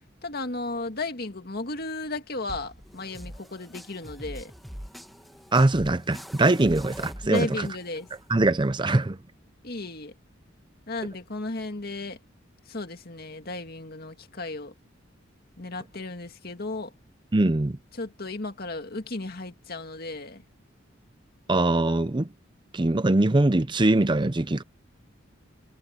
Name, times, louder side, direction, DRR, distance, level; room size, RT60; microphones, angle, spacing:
voice 1, 0.2-4.5 7.2-8.1 9.6-10.1 10.9-12.2 12.7-14.7 15.6-16.9 18.0-20.4, left 2 dB, 50° left, 2.0 m, -34 dB
sound 1, 2.5-8.5, equal, ahead, 1.7 m, -43 dB
voice 2, 5.5-7.7 8.3-9.2 17.3-17.8 21.5-22.3 22.7-24.6, right 2 dB, 25° right, 0.6 m, -22 dB
head